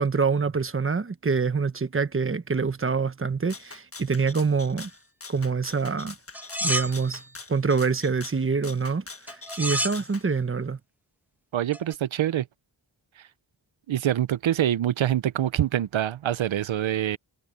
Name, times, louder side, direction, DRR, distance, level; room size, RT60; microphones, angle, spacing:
voice 1, 0.0-4.9 5.3-6.1 6.6-7.2 7.5-9.0 9.3-10.8, right 5 dB, 30° right, 1.1 m, -25 dB
Rattle (instrument), 3.5-10.2, left 4 dB, 30° left, 1.4 m, -44 dB
sound 1, 6.3-7.3 9.3-10.0 11.7-11.9, equal, 5° right, 1.6 m, -30 dB
voice 2, 11.5-12.5 13.9-17.2, right 11 dB, 85° right, 0.7 m, -25 dB
wide cardioid pair, 100°, 45 cm